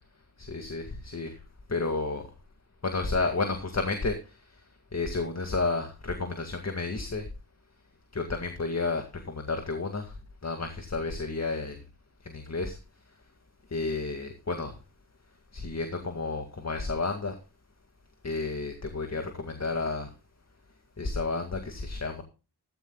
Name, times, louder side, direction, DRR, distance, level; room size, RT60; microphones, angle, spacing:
voice 1, 0.4-1.4 1.7-2.3 2.8-4.6 4.9-7.3 8.1-10.2 10.4-11.8 12.2-12.8 13.7-14.7 15.5-17.4 18.2-20.1 21.0-22.2, left 3 dB, 40° left, 6 dB, 2.1 m, -31 dB
15.5 x 14.0 x 2.3 m, 0.32 s
wide cardioid pair, 85°, 39 cm